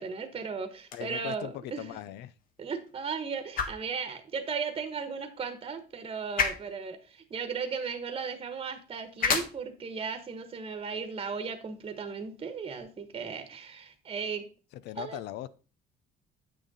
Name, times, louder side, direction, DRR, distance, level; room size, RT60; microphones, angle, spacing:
voice 1, 0.0-2.0 2.6-14.4 15.0-15.2, right 5 dB, 35° right, 8 dB, 1.2 m, -36 dB
sound 1, 0.7-12.8, left 6 dB, 55° left, 1.4 m, -38 dB
voice 2, 0.9-2.3 14.7-15.5, left 13 dB, 85° left, 17 dB, 0.6 m, -39 dB
8.5 x 6.3 x 4.1 m, 0.35 s
cardioid pair, 110°, 17 cm